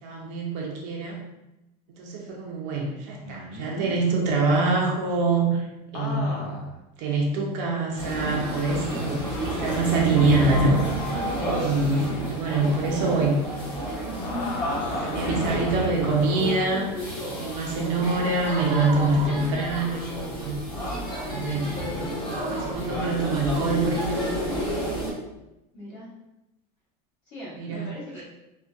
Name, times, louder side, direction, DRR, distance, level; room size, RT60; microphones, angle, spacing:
voice 1, 0.0-1.2 1.9-5.6 5.9-6.5 7.0-10.8 11.4-13.4 15.0-16.9 17.2-20.7 21.2-21.8 22.3-24.4 27.6-27.9, right 3 dB, 45° right, -1 dB, 0.4 m, -25 dB
sound 1, 3.2-3.9 5.9-6.7 7.3-7.4 8.7-9.3 11.7-12.3 14.1-17.0 19.2-19.5, left 2 dB, 65° left, 0.5 m, -37 dB
sound 2, 8.0-25.1, equal, 20° left, 0.7 m, -30 dB
voice 2, 15.6-16.0 25.7-26.1 27.3-28.2, left 1 dB, 50° left, -6 dB, 1.0 m, -40 dB
sound 3, 18.2-22.7, right 2 dB, 85° right, 0.7 m, -39 dB
2.6 x 2.1 x 2.3 m, 0.95 s
supercardioid pair, 175°, 21 cm